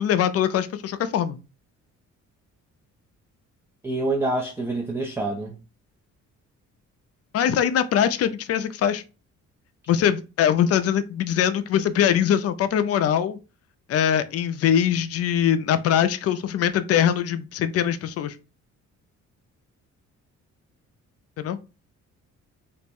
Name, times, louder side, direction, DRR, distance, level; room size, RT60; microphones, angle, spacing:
voice 1, 0.0-1.4 7.3-9.0 9.9-13.4 13.9-18.3 21.4-21.6, left 9 dB, 55° left, 0.4 m, -22 dB
voice 2, 3.8-5.5, right 2 dB, 10° right, 0.4 m, -26 dB
2.5 x 2.1 x 3.4 m
cardioid pair, 90°, 30 cm